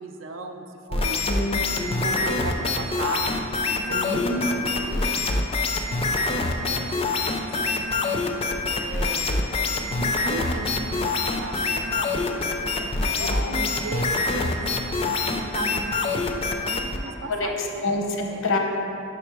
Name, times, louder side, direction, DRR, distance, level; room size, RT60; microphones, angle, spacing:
voice 1, 0.0-1.2 1.9-3.5 3.7-5.2 5.8-8.2 8.8-14.6 15.0-17.9 18.3-18.4, right 3 dB, 75° right, 5 dB, 0.5 m, -37 dB
sound 1, 0.9-17.0, left 3 dB, 30° left, 0.3 m, -25 dB
voice 2, 1.3-1.9 3.9-4.4 13.2-13.6 17.3-17.5 17.8-18.6, left 2 dB, 85° left, 1 dB, 0.7 m, -27 dB
5.1 x 4.9 x 4.6 m, 2.7 s
head